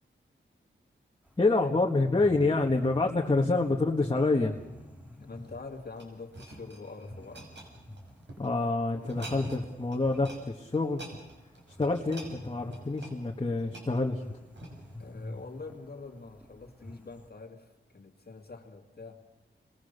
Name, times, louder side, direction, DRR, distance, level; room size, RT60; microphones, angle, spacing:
sound 1, 1.2-17.3, left 1 dB, 10° right, 3.5 m, -50 dB
voice 1, 1.4-4.6 8.4-11.0 11.8-14.2, left 3 dB, 25° left, -1 dB, 1.7 m, -27 dB
voice 2, 5.2-7.5 15.0-19.3, left 3 dB, 55° left, 1 dB, 2.3 m, -45 dB
sound 2, 5.3-8.5 9.0-9.7 9.9-10.4 10.7-15.0 15.6-15.7, right 1 dB, 65° right, 6.6 m, -47 dB
30.0 x 22.0 x 6.8 m, 1.1 s
wide cardioid pair, 95°, 20 cm